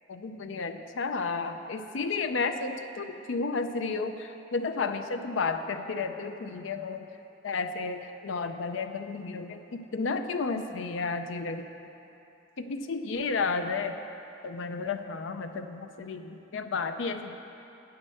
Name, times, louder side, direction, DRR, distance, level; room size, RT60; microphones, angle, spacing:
voice 1, 0.1-7.1 7.4-11.7 12.6-14.0 14.4-17.4, left 4 dB, 80° left, 8 dB, 0.5 m, -32 dB
9.3 x 6.5 x 6.8 m, 2.9 s
head